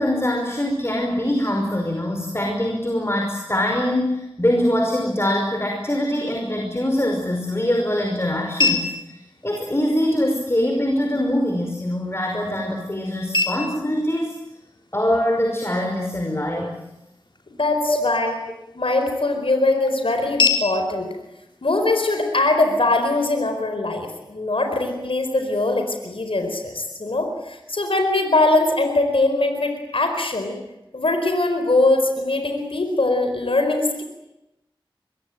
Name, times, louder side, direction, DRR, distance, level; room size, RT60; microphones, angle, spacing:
voice 1, 0.0-9.2 9.4-14.3 14.9-16.8 17.9-18.0, left 1 dB, 30° left, 2 dB, 5.4 m, -23 dB
sound 1, 6.8-22.8, left 3 dB, 60° left, 4.2 m, -31 dB
voice 2, 17.5-18.3 18.7-21.1 21.6-30.6 30.9-34.0, left 2 dB, 85° left, 5 dB, 4.6 m, -21 dB
25.0 x 22.0 x 9.1 m, 0.94 s
wide cardioid pair, 40°, 9 cm